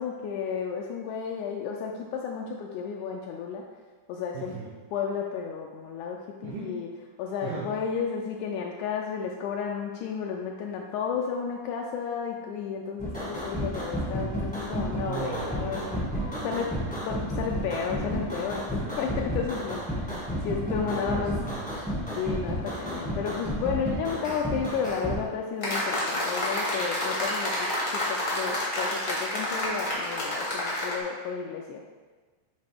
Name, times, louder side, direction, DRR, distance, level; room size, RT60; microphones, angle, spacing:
voice 1, 0.0-3.6 4.1-4.5 4.9-6.9 7.2-16.1 16.4-16.7 17.1-21.4 22.1-31.8, left 6 dB, 80° left, 0 dB, 1.9 m, -32 dB
voice 2, 4.3-4.7 6.4-6.7 7.4-7.7 15.1-17.0 18.8-19.1 20.8-21.9, right 5 dB, 80° right, -6 dB, 2.3 m, -38 dB
sound 1, 13.0-25.2, equal, 5° left, 0.6 m, -32 dB
sound 2, 25.6-31.0, left 1 dB, 55° left, 0.8 m, -29 dB
8.9 x 3.2 x 3.4 m, 1.4 s
omnidirectional pair, 3.6 m